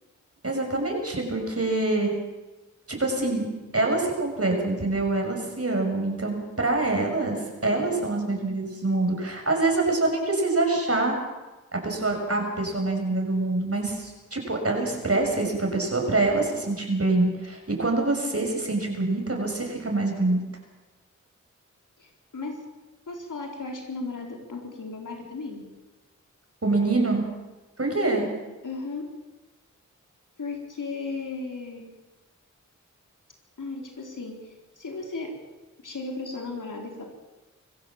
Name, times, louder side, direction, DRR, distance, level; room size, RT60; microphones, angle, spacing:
voice 1, 0.4-2.1 2.9-11.1 11.7-20.4 26.6-27.2 27.8-28.3, right 2 dB, 50° right, 2 dB, 6.5 m, -25 dB
voice 2, 22.0-22.6 23.1-25.6 28.6-29.0 30.4-31.8 33.6-35.3 35.8-37.0, left 3 dB, 85° left, 1 dB, 4.2 m, -35 dB
25.0 x 15.5 x 7.4 m, 1.2 s
cardioid pair, 40°, 31 cm